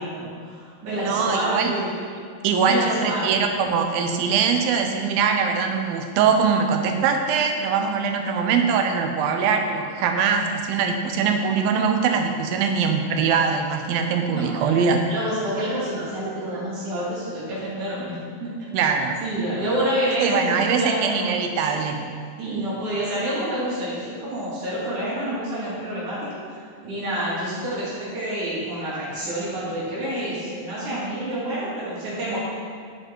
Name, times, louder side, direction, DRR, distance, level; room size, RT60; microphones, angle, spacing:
voice 1, 0.0-1.9 2.6-3.4 14.3-14.8 15.1-18.5 19.2-21.3 21.7-22.0 22.4-26.2 26.5-26.6 26.8-32.4, right 1 dB, 55° right, -9 dB, 4.0 m, -28 dB
voice 2, 1.1-1.7 2.4-15.0 18.7-19.2 20.2-22.0, right 6 dB, 90° right, 4 dB, 2.7 m, -22 dB
11.0 x 7.5 x 4.6 m, 2.2 s
omnidirectional pair, 4.1 m